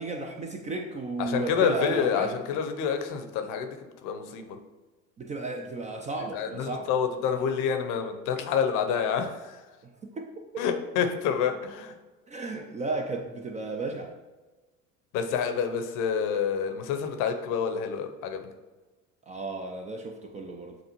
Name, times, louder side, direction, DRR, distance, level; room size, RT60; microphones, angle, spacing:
voice 1, 0.0-2.4 5.2-6.9 9.8-10.6 12.3-14.1 19.3-20.8, right 2 dB, 20° right, 3 dB, 0.4 m, -34 dB
voice 2, 1.2-3.7 4.0-4.6 6.3-9.6 10.6-11.9 15.1-18.4, left 7 dB, 50° left, 6 dB, 0.7 m, -28 dB
7.3 x 2.5 x 3.0 m, 1.2 s
figure-of-eight pair, 65°, 41 cm